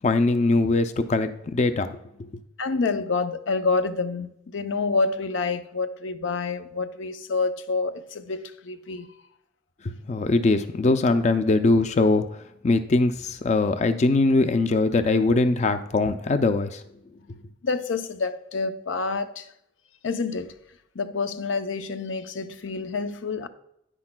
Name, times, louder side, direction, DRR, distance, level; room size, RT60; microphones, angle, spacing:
voice 1, 0.0-2.0 9.8-12.3 12.6-16.8, left 3 dB, 35° left, 0.4 m, -21 dB
voice 2, 2.6-9.1 17.6-19.5 20.0-20.6 20.9-23.5, left 4 dB, 80° left, 0.6 m, -28 dB
9.9 x 9.6 x 2.2 m
head